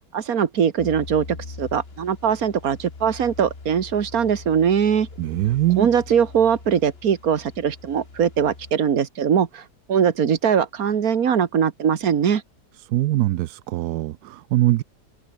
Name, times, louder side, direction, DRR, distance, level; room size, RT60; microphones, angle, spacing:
voice 1, 0.1-5.1 5.8-9.6 9.9-12.4, right 8 dB, 55° right, 1.8 m, -21 dB
sound 1, 0.8-8.7, left 3 dB, 35° left, 2.4 m, -41 dB
voice 2, 5.2-5.9 12.9-14.8, right 16 dB, 70° right, 1.0 m, -22 dB
omnidirectional pair, 2.0 m